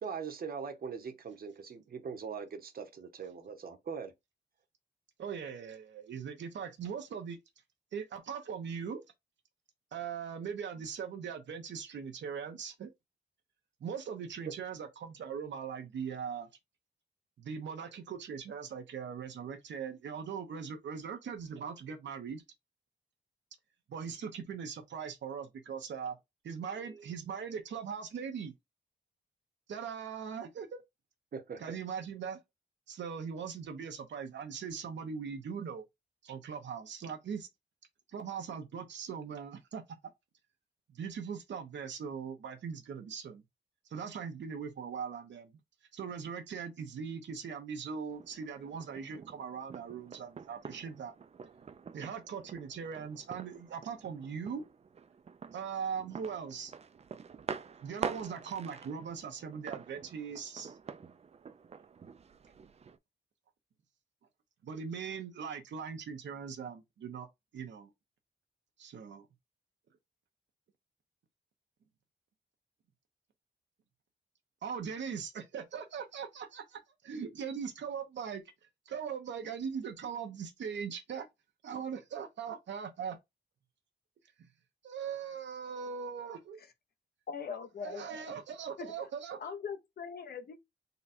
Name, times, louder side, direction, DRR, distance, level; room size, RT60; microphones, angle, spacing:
voice 1, 0.0-4.1 31.3-31.8, right 6 dB, 55° right, 0.9 m, -41 dB
voice 2, 5.2-7.4 7.9-9.0 9.9-12.9 13.8-16.5 17.4-22.4 23.9-26.2 26.4-28.5 29.7-30.8 31.6-32.4 32.9-35.8 36.2-37.5 38.1-39.8 40.9-43.4 43.9-45.6 45.9-51.1 51.9-54.6 55.5-56.8 57.8-60.8 64.6-67.3 67.5-67.9 68.8-69.3 74.6-78.4 78.9-81.3 81.6-83.2 84.4-84.5 84.8-86.6 87.8-89.4, right 6 dB, 85° right, 0.9 m, -40 dB
sound 1, 48.1-63.0, right 6 dB, 35° right, 0.4 m, -46 dB
voice 3, 87.3-88.0 88.8-88.9 89.4-90.6, left 6 dB, 60° left, 0.8 m, -40 dB
3.9 x 2.3 x 4.2 m
wide cardioid pair, 120°, 18 cm